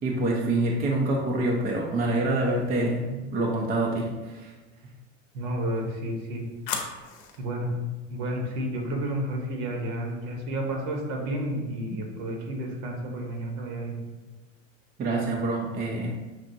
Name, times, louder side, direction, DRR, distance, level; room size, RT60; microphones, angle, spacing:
voice 1, 0.0-4.5 11.9-12.0 15.0-16.1, right 2 dB, 25° right, 0 dB, 0.5 m, -26 dB
sound 1, 2.3-3.0 5.4-7.5, left 5 dB, 55° left, 0.8 m, -39 dB
voice 2, 5.3-6.5 7.4-7.7 8.1-14.0, right 1 dB, 60° right, 1 dB, 1.2 m, -31 dB
6.0 x 2.5 x 2.6 m, 1.2 s
supercardioid pair, 105°, 39 cm